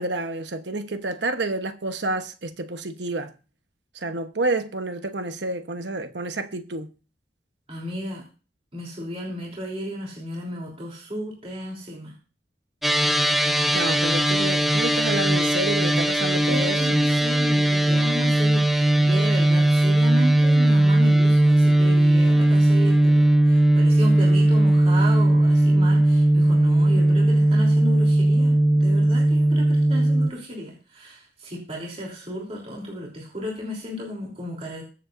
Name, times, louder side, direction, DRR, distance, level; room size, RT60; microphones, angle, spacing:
voice 1, 0.0-3.3 3.9-6.9 13.7-17.0, right 2 dB, 70° right, 1.1 m, -29 dB
voice 2, 7.7-8.2 8.7-12.1 16.5-34.8, equal, 35° right, 3.3 m, -34 dB
sound 1, 12.8-30.3, right 1 dB, ahead, 0.8 m, -18 dB
22.5 x 7.7 x 2.6 m
head